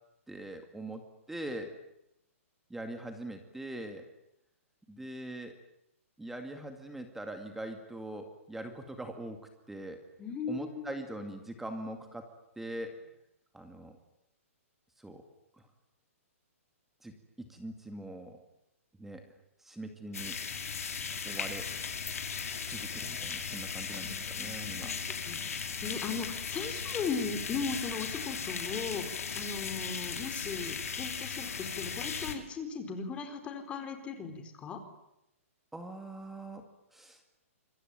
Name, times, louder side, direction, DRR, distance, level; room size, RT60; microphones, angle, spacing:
voice 1, 0.3-1.0 1.3-1.7 2.7-4.1 4.9-5.5 6.2-9.4 9.7-10.0 10.5-12.3 12.6-13.0 13.5-14.0 15.0-15.2 17.0-18.4 19.0-19.2 19.6-20.4 21.2-21.7 22.7-25.0 35.7-36.7 36.9-37.2, right 1 dB, 5° right, 6 dB, 2.2 m, -42 dB
voice 2, 10.2-10.9 23.9-34.8, left 5 dB, 15° left, 7 dB, 4.3 m, -38 dB
sound 1, 20.1-32.3, left 6 dB, 85° left, 5.3 m, -37 dB
27.0 x 23.5 x 9.0 m, 0.82 s
hypercardioid pair, 160°, 8 cm